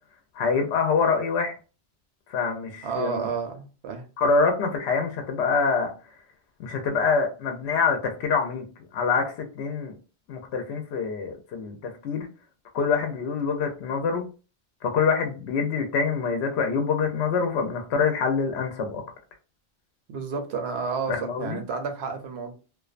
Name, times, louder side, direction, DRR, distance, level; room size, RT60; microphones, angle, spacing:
voice 1, 0.4-1.5 2.3-3.3 4.2-5.9 6.6-8.6 8.9-9.9 10.3-12.3 12.7-14.2 14.8-19.0 21.1-21.6, left 5 dB, 85° left, 4 dB, 0.8 m, -25 dB
voice 2, 2.8-4.1 20.1-22.5, right 5 dB, 80° right, 6 dB, 0.9 m, -31 dB
2.4 x 2.2 x 2.4 m, 0.34 s
omnidirectional pair, 1.1 m